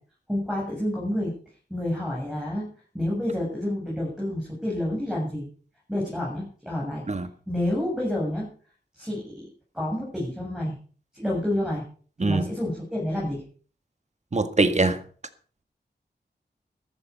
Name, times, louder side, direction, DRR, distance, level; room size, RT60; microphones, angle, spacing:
voice 1, 0.3-1.3 1.7-2.7 2.9-5.5 5.9-7.0 7.5-8.5 9.0-9.5 9.7-10.8 11.1-11.8 12.2-13.4, left 1 dB, 5° right, -3 dB, 7.2 m, -29 dB
voice 2, 12.2-12.5 14.3-15.0, right 3 dB, 40° right, 10 dB, 1.7 m, -23 dB
13.5 x 13.0 x 5.4 m, 0.42 s
wide cardioid pair, 90°, 18 cm